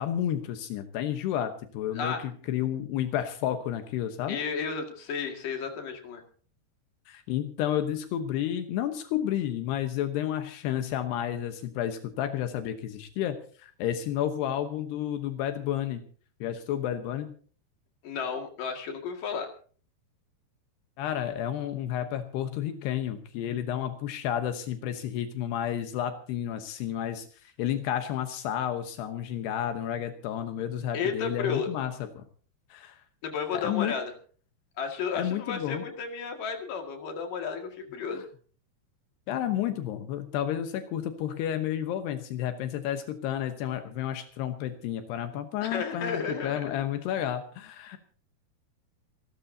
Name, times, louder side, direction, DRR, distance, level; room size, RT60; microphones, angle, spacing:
voice 1, 0.0-4.4 7.1-16.0 16.4-17.3 21.0-32.2 32.7-33.0 33.5-33.9 35.1-35.8 39.3-48.0, left 10 dB, 80° left, 7 dB, 3.2 m, -31 dB
voice 2, 4.3-6.2 18.0-19.5 30.9-31.7 33.2-34.1 34.8-38.2 45.6-46.6, left 6 dB, 60° left, 4 dB, 3.5 m, -33 dB
27.5 x 13.0 x 2.8 m, 0.43 s
omnidirectional pair, 4.7 m